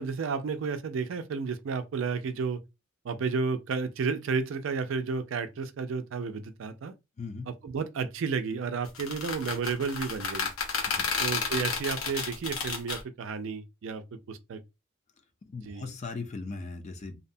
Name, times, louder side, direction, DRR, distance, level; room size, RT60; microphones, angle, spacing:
voice 1, 0.0-2.6 3.0-6.9 7.5-10.5 11.2-14.6 15.6-15.9, right 5 dB, 65° right, 0.4 m, -32 dB
voice 2, 7.2-7.5 10.9-11.0 15.5-17.3, left 4 dB, 30° left, 0.4 m, -38 dB
sound 1, 8.9-13.0, left 5 dB, 85° left, 0.8 m, -31 dB
2.7 x 2.1 x 2.5 m
head